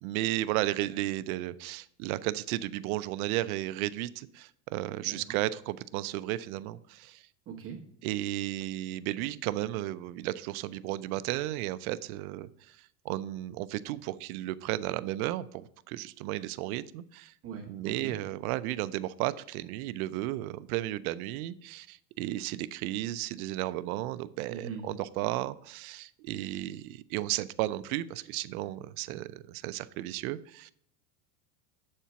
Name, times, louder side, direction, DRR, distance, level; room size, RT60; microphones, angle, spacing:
voice 1, 0.0-7.3 8.0-17.3 17.7-30.7, right 15 dB, 65° right, 15 dB, 0.6 m, -34 dB
voice 2, 7.5-7.8 17.4-18.2 24.5-24.9, right 6 dB, 30° right, 1 dB, 1.1 m, -41 dB
7.4 x 4.4 x 6.9 m, 0.68 s
supercardioid pair, 145°, 47 cm